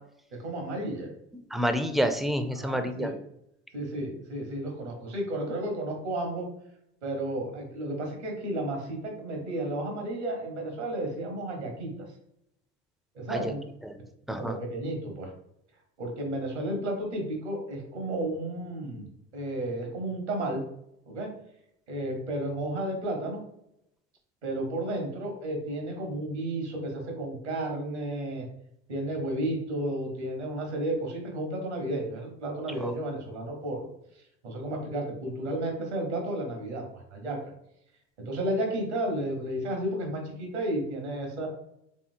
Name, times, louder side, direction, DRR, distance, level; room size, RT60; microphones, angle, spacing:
voice 1, 0.3-1.1 2.5-3.2 3.7-6.5 7.0-12.1 13.1-13.6 14.3-15.3 16.0-20.6 21.1-21.3 21.9-23.4 24.4-28.5 28.9-33.9 34.4-37.4 38.2-41.5, right 1 dB, 85° right, 2 dB, 1.3 m, -32 dB
voice 2, 1.5-3.1 13.3-13.5 13.9-14.0 14.3-14.6 32.8-32.9, equal, ahead, 7 dB, 0.4 m, -28 dB
4.3 x 3.6 x 2.6 m, 0.77 s
hypercardioid pair, 65°, 33 cm